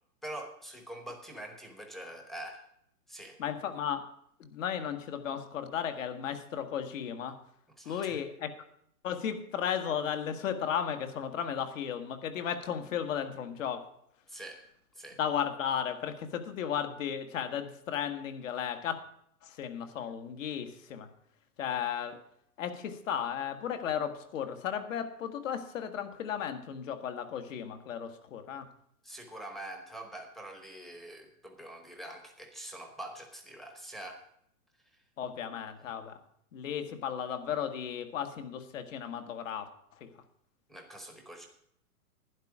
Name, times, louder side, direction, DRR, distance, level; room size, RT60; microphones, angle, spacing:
voice 1, 0.2-2.7 3.1-3.4 7.8-8.2 14.3-14.6 14.9-15.2 29.0-34.2 40.7-41.5, right 1 dB, ahead, 1.0 m, -44 dB
voice 2, 3.4-4.1 4.4-7.4 7.8-8.6 9.0-13.9 15.2-19.0 19.4-21.1 21.6-22.2 22.6-28.7 35.2-36.2 36.5-40.1, left 8 dB, 55° left, 1.7 m, -35 dB
12.0 x 10.0 x 4.8 m
hypercardioid pair, 160°, 47 cm